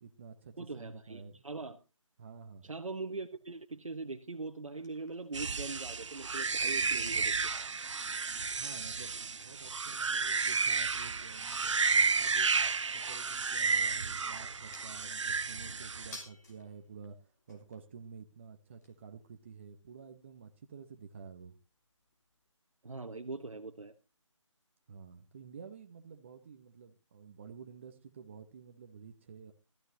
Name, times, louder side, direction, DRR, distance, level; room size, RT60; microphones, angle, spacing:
voice 1, 0.0-1.4 2.2-2.7 8.6-12.5 12.8-21.6 24.9-29.5, right 6 dB, 25° right, 0.8 m, -51 dB
voice 2, 0.6-1.8 2.6-7.3 22.8-23.9, right 3 dB, 85° right, 1.1 m, -41 dB
sound 1, 4.8-22.5, left 3 dB, 35° left, 3.0 m, -60 dB
sound 2, 5.3-16.2, right 5 dB, 65° right, 0.6 m, -32 dB
17.5 x 13.5 x 2.7 m
figure-of-eight pair, 165°, 16 cm